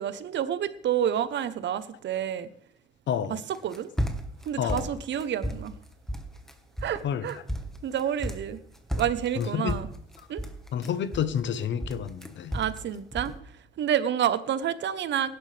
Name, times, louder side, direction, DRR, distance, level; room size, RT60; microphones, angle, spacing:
voice 1, 0.0-2.5 3.3-3.9 4.4-5.7 6.8-7.4 7.8-8.6 8.9-9.9 10.3-10.4 12.5-13.3 13.8-15.4, right 9 dB, 65° right, 0.9 m, -29 dB
voice 2, 3.1-3.4 4.6-4.9 7.0-7.3 9.4-9.8 10.7-12.5, left 8 dB, 65° left, 1.0 m, -29 dB
sound 1, 3.5-4.4 4.7-5.7 6.1-6.5 6.8-7.0 7.3-8.6 8.9-11.5 11.8-12.8 13.1-13.4, equal, ahead, 1.4 m, -33 dB
16.5 x 11.0 x 3.4 m
cardioid pair, 90°, 20 cm